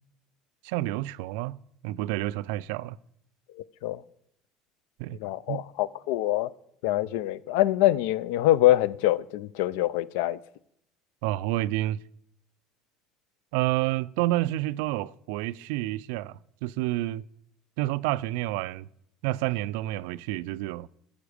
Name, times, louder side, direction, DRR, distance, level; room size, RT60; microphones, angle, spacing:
voice 1, 0.6-1.6 1.8-3.0 5.0-5.2 5.5-5.6 11.2-12.0 13.5-17.2 17.8-18.9 19.2-20.9, right 16 dB, 85° right, 0.3 m, -29 dB
voice 2, 5.2-6.5 6.8-10.4, left 15 dB, 85° left, 0.4 m, -24 dB
14.0 x 7.1 x 5.0 m
cardioid pair, 160°, 0 cm